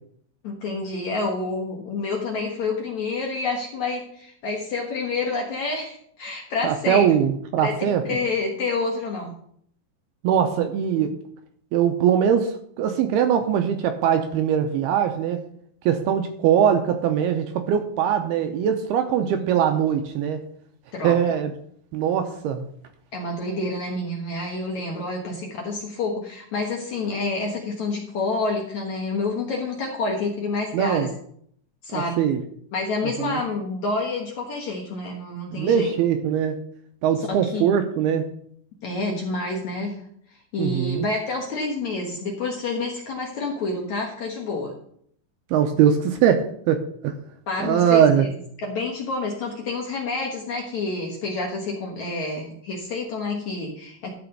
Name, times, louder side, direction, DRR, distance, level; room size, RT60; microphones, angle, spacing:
voice 1, 0.4-7.1 7.6-9.3 19.2-19.5 20.9-21.4 23.1-31.1 31.8-32.2 32.7-35.9 37.2-37.6 38.8-40.0 40.5-44.7 47.5-48.3 48.6-54.1, left 3 dB, 60° left, -1 dB, 2.0 m, -28 dB
voice 2, 6.6-8.0 10.2-11.1 11.7-15.4 15.9-20.4 21.0-21.5 21.9-22.7 30.7-31.1 31.9-32.4 33.0-33.4 35.5-36.6 37.0-38.3 40.6-41.1 45.5-47.1 47.6-48.3, right 8 dB, 80° right, 6 dB, 2.5 m, -21 dB
13.0 x 5.0 x 6.6 m, 0.65 s
omnidirectional pair, 5.1 m